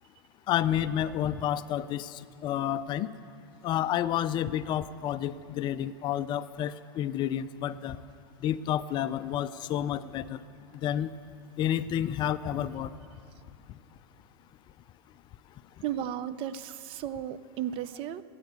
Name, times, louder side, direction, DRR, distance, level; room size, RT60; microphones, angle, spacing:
voice 1, 0.5-3.1 3.6-8.0 8.4-10.4 10.8-11.1 11.6-12.9, left 11 dB, 35° left, 14 dB, 0.4 m, -30 dB
voice 2, 15.8-18.2, right 10 dB, 40° right, 14 dB, 0.5 m, -34 dB
20.0 x 8.2 x 8.1 m, 2.4 s
hypercardioid pair, 120°, 13 cm